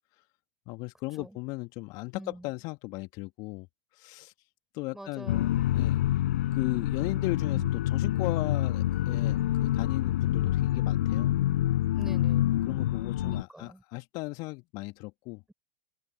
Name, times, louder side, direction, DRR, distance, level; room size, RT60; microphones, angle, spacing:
voice 1, 0.7-3.7 3.9-4.3 4.7-5.3 5.7-6.0 6.5-11.4 12.5-15.4, left 24 dB, 50° left, 2.2 m, -36 dB
voice 2, 2.2-2.5 4.9-5.6 7.5-7.7 12.0-12.6 13.2-13.8, right 1 dB, 5° right, 6.2 m, -45 dB
sound 1, 5.3-13.4, left 13 dB, 65° left, 5.4 m, -27 dB
figure-of-eight pair, 90°, 9 cm